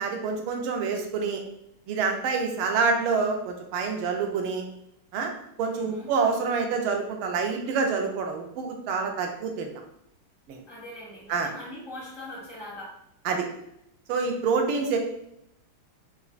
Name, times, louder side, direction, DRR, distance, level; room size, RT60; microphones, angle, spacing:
voice 1, 0.0-1.4 1.9-4.6 5.1-5.3 5.6-9.7 10.5-10.6 11.3-11.5 13.2-13.5 14.1-15.0, right 5 dB, 85° right, 3 dB, 1.4 m, -27 dB
voice 2, 2.6-2.9 5.7-6.1 10.7-13.0, left 1 dB, 60° left, -7 dB, 0.9 m, -42 dB
4.3 x 2.4 x 2.4 m, 0.78 s
omnidirectional pair, 2.2 m